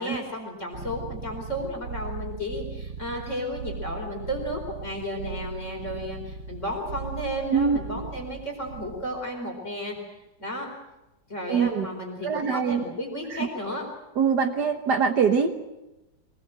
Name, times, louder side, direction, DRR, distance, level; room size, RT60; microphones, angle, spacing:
voice 1, 0.0-10.0 10.4-10.7 11.3-13.8, equal, 40° left, 1 dB, 4.9 m, -33 dB
sound 1, 0.7-9.2, right 4 dB, 80° right, 2.0 m, -38 dB
voice 2, 11.5-11.9 12.2-12.8 13.3-13.5 14.2-15.6, right 6 dB, 65° right, 6 dB, 1.8 m, -23 dB
24.0 x 20.5 x 7.8 m, 1.0 s
omnidirectional pair, 2.0 m